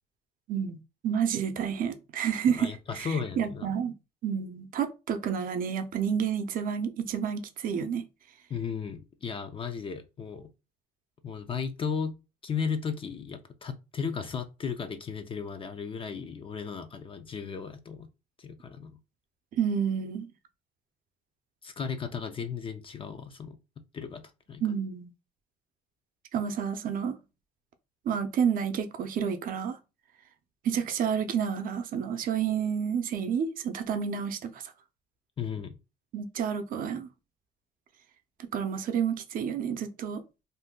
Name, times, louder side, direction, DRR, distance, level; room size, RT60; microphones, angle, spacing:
voice 1, 1.0-3.1 3.4-3.9 4.2-8.0 19.5-20.3 24.6-25.1 26.3-27.2 28.1-29.8 30.6-34.6 36.1-37.1 38.4-40.2, right 7 dB, 55° right, 0.6 m, -30 dB
voice 2, 2.5-3.7 8.5-10.5 11.2-18.1 18.4-19.0 21.6-23.6 23.9-24.2 24.5-24.6 35.4-35.7, left 6 dB, 30° left, 0.4 m, -35 dB
2.6 x 2.2 x 3.6 m
cardioid pair, 110°, 17 cm